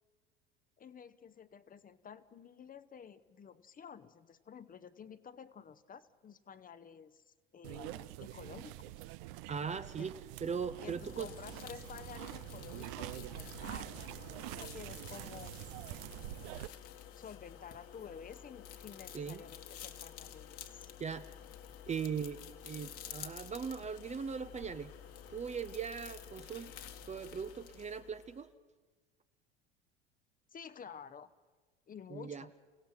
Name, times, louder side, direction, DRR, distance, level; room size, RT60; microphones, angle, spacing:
voice 1, 0.8-9.1 10.0-10.1 10.8-15.5 16.3-16.7 17.2-20.9 30.5-31.3 31.9-32.5, left 7 dB, 25° left, 13 dB, 1.0 m, -51 dB
sound 1, 7.6-16.7, right 17 dB, 60° right, 0.7 m, -46 dB
voice 2, 9.5-10.2 10.4-11.3 19.1-19.4 21.0-21.3 21.9-24.9 25.3-26.7 27.1-28.5 32.1-32.5, right 6 dB, 20° right, 11 dB, 0.7 m, -39 dB
sound 2, 10.6-28.5, left 10 dB, 45° left, 1.7 m, -51 dB
sound 3, 19.6-27.7, right 5 dB, 90° right, 3.1 m, -69 dB
29.0 x 17.0 x 6.0 m, 1.4 s
hypercardioid pair, 75°, 31 cm